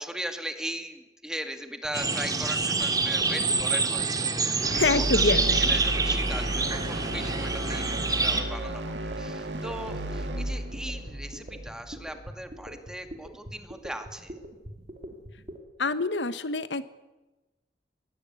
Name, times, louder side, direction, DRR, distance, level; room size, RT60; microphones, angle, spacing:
voice 1, 0.0-14.4, right 1 dB, 5° right, 6 dB, 2.3 m, -38 dB
sound 1, 1.8-15.6, right 1 dB, 40° right, 3.2 m, -43 dB
sound 2, 1.9-8.4, right 3 dB, 20° right, 2.3 m, -27 dB
sound 3, 4.6-12.7, right 1 dB, 70° right, 2.8 m, -33 dB
voice 2, 4.7-5.7 15.8-16.8, left 3 dB, 85° left, 13 dB, 1.2 m, -26 dB
22.0 x 17.5 x 9.6 m, 1.1 s
head